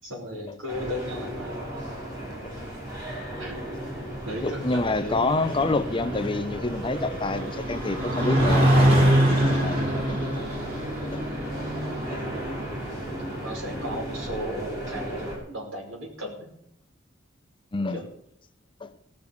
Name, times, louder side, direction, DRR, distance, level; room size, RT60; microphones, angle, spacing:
voice 1, 0.0-1.7 3.4-3.5 4.3-5.2 12.1-12.5 13.4-16.5 17.9-18.1, left 1 dB, 80° right, 5.4 m, -36 dB
sound 1, 0.7-15.4, right 1 dB, 20° right, 5.5 m, -35 dB
sound 2, 3.8-14.4, right 1 dB, 50° right, 7.6 m, -26 dB
voice 2, 4.4-10.4 11.1-11.2 12.1-12.2 17.7-18.0 18.8-18.9, left 3 dB, 25° left, 0.6 m, -28 dB
18.0 x 6.6 x 7.0 m
head